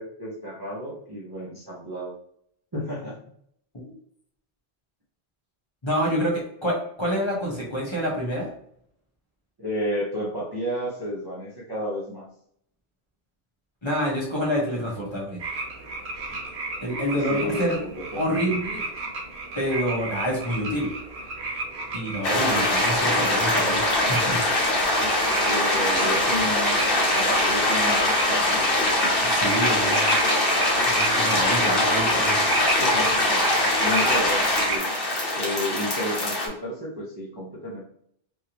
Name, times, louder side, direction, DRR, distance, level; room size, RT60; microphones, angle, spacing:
voice 1, 0.0-2.1 2.7-3.2 9.6-12.3 16.3-16.4 17.3-18.4 24.8-25.1 25.4-28.7 29.5-30.1 32.4-33.5 33.8-34.9 35.3-37.8, equal, 25° right, -6 dB, 0.6 m, -32 dB
voice 2, 5.8-8.5 13.8-15.4 16.8-17.8 18.2-18.8 19.6-20.9 21.9-24.7 29.2-30.1 30.9-32.4, equal, 30° left, -5 dB, 1.0 m, -27 dB
sound 1, 15.4-34.8, right 3 dB, 80° right, 1.0 m, -33 dB
sound 2, 22.2-36.5, left 1 dB, 60° left, 1.1 m, -22 dB
3.3 x 2.6 x 2.8 m, 0.67 s
omnidirectional pair, 1.1 m